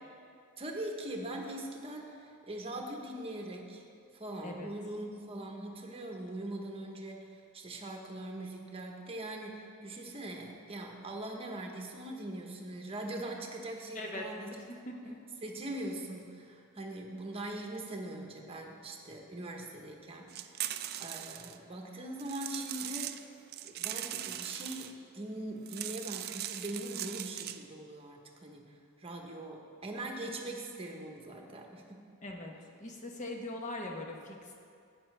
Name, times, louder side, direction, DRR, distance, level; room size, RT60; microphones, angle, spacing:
voice 1, 0.6-3.8 4.1-14.5 15.4-20.7 21.0-23.2 23.6-32.1, right 1 dB, 25° right, 1 dB, 1.0 m, -41 dB
voice 2, 13.9-14.2 14.5-15.2 32.2-32.5 32.8-34.6, left 2 dB, 35° left, 1 dB, 1.0 m, -41 dB
sound 1, 20.3-21.6 22.2-23.2 23.5-24.9 25.6-27.6, right 12 dB, 45° right, 0.3 m, -40 dB
11.0 x 8.9 x 3.3 m, 2.4 s
head